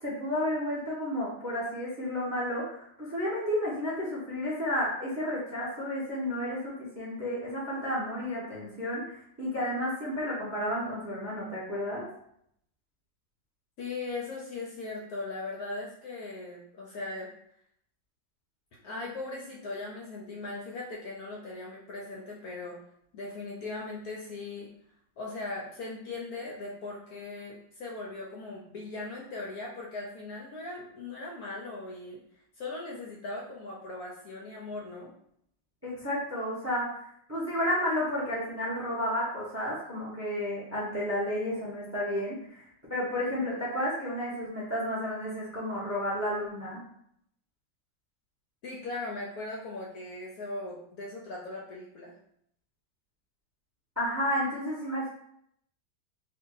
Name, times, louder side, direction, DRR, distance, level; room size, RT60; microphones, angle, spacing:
voice 1, 0.0-9.0 9.4-12.0 35.8-36.9 37.3-42.6 42.9-46.8 54.0-55.1, equal, 20° right, -6 dB, 0.4 m, -31 dB
voice 2, 13.8-17.3 18.8-22.8 23.1-24.7 25.2-32.2 32.6-35.1 48.6-52.1, left 2 dB, 70° left, -3 dB, 0.9 m, -39 dB
2.8 x 2.5 x 3.8 m, 0.71 s
omnidirectional pair, 2.0 m